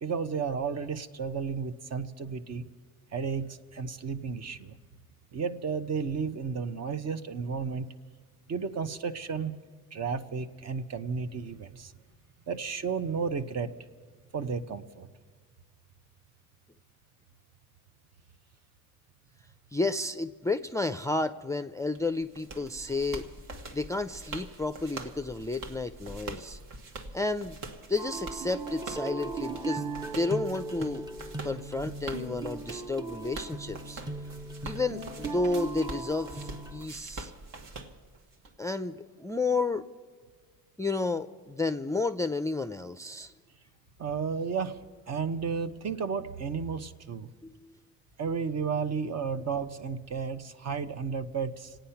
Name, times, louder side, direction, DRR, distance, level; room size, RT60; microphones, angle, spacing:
voice 1, 0.0-2.6 3.1-4.8 5.3-7.9 8.5-9.5 9.9-11.9 12.5-13.7 14.3-15.1 44.0-44.8 45.1-47.3 48.2-51.8, right 5 dB, 50° right, 10 dB, 0.9 m, -33 dB
voice 2, 19.7-23.3 23.7-26.6 27.1-27.6 27.9-29.8 30.1-31.1 31.4-34.0 34.6-37.3 38.6-39.9 40.8-43.3 47.6-47.7, left 3 dB, 10° left, 9 dB, 0.4 m, -31 dB
sound 1, 21.9-38.5, right 3 dB, 65° right, 1.5 m, -44 dB
sound 2, 28.0-36.9, right 3 dB, 10° right, 0.7 m, -38 dB
27.0 x 9.0 x 5.8 m, 1.5 s
cardioid pair, 90°, 34 cm